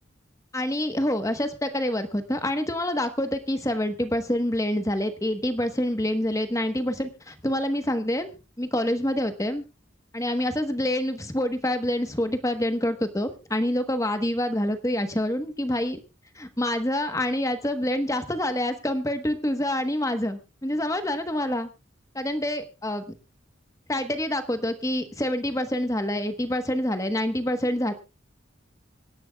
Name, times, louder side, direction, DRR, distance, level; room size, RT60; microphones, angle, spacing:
voice 1, 0.5-8.3 8.6-9.6 10.1-16.0 16.3-21.7 22.1-23.0 23.9-27.9, left 1 dB, 15° left, 8 dB, 1.2 m, -27 dB
25.5 x 10.5 x 2.3 m, 0.30 s
head